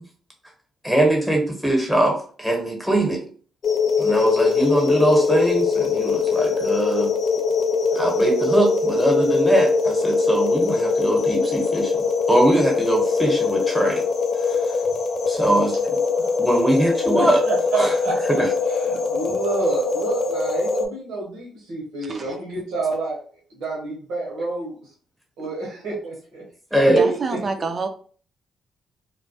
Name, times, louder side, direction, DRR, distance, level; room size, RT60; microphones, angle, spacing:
voice 1, 0.8-3.2 4.0-7.1 7.9-14.0 14.5-14.6 15.3-16.0 16.4-17.4 17.8-17.9 18.3-18.5 26.7-27.0, right 1 dB, ahead, 1 dB, 1.0 m, -21 dB
sound 1, 3.6-20.9, left 4 dB, 60° left, 0.4 m, -22 dB
voice 2, 17.2-18.4 18.7-23.2 23.5-24.7 25.4-26.4 27.0-27.4, right 3 dB, 80° right, -4 dB, 0.8 m, -28 dB
voice 3, 22.0-22.4 26.9-27.9, right 4 dB, 45° right, 5 dB, 0.4 m, -27 dB
2.2 x 2.1 x 2.6 m, 0.43 s
supercardioid pair, 60°, 0 cm